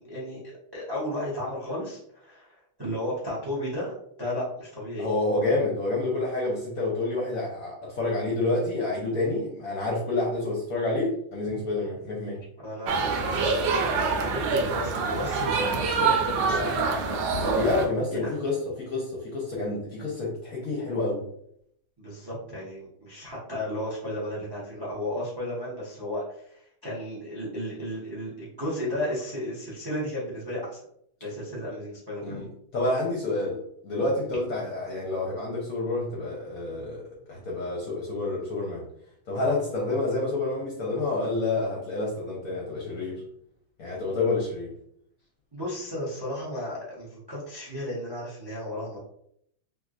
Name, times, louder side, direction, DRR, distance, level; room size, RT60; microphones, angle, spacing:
voice 1, 0.0-5.1 12.6-17.2 18.1-18.4 22.0-30.8 31.2-32.4 45.5-49.0, left 1 dB, 40° right, -6 dB, 0.3 m, -34 dB
voice 2, 5.0-12.4 17.3-21.2 32.2-38.8 39.3-43.2 43.8-44.7, left 2 dB, 65° left, -3 dB, 0.9 m, -28 dB
sound 1, 12.9-17.9, right 4 dB, 75° right, 1.2 m, -25 dB
3.5 x 2.7 x 2.4 m, 0.70 s
omnidirectional pair, 2.2 m